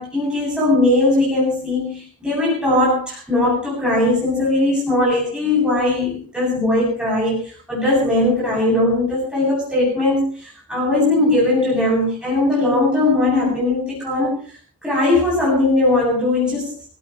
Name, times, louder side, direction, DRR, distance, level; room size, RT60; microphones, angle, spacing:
voice 1, 0.0-14.4 14.8-16.7, left 2 dB, 5° right, -6 dB, 7.7 m, -19 dB
26.0 x 16.5 x 3.2 m, 0.39 s
head